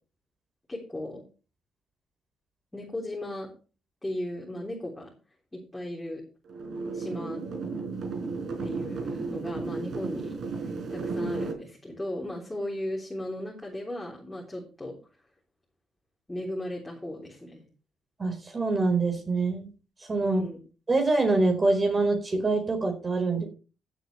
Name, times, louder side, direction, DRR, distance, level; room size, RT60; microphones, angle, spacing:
voice 1, 0.7-1.2 2.7-3.5 4.0-5.1 5.5-6.2 6.9-7.4 8.6-14.9 16.3-17.6 20.2-20.6, left 1 dB, 10° left, -2 dB, 3.5 m, -36 dB
sound 1, 6.5-11.5, right 4 dB, 60° right, 4.4 m, -33 dB
voice 2, 18.2-19.7 20.1-20.4 20.9-23.5, right 3 dB, 30° right, 4 dB, 4.5 m, -25 dB
16.0 x 8.3 x 3.3 m, 0.35 s
cardioid pair, 90°, 0 cm